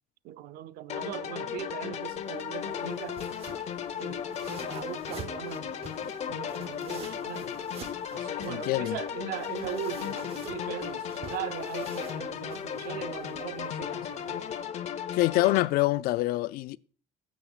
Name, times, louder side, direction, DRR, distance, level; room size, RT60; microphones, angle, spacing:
voice 1, 0.2-3.2 4.0-7.5 8.1-14.4 15.5-15.6, right 13 dB, 80° right, 0.5 m, -40 dB
sound 1, 0.9-15.7, left 8 dB, 45° left, 0.9 m, -35 dB
sound 2, 2.0-14.6, right 5 dB, 40° right, 1.0 m, -48 dB
voice 2, 8.5-9.0 15.1-16.8, left 18 dB, 80° left, 0.4 m, -25 dB
21.0 x 7.1 x 2.4 m
cardioid pair, 130°, 15 cm